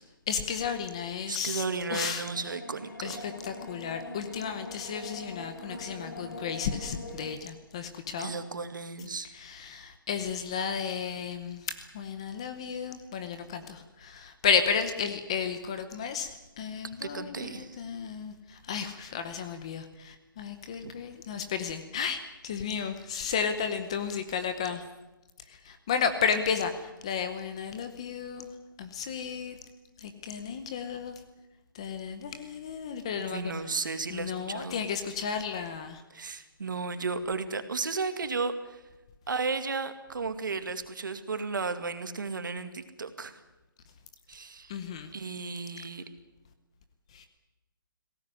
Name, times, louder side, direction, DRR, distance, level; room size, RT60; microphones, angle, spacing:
voice 1, 0.3-1.6 1.9-2.3 3.0-8.3 9.3-16.3 16.6-24.8 25.6-28.5 28.8-29.6 30.0-31.1 31.7-33.5 34.1-36.0 44.7-45.1 47.1-47.3, left 6 dB, 15° left, 9 dB, 0.8 m, -33 dB
voice 2, 1.3-3.2 8.2-9.3 17.0-17.8 20.8-20.9 33.3-34.8 36.1-38.8 39.3-43.4 44.3-44.7 45.1-46.0, right 4 dB, 60° right, 9 dB, 2.2 m, -34 dB
sound 1, 2.1-7.3, left 2 dB, 55° left, 5.7 m, -43 dB
20.5 x 17.5 x 9.7 m, 1.0 s
hypercardioid pair, 180°, 12 cm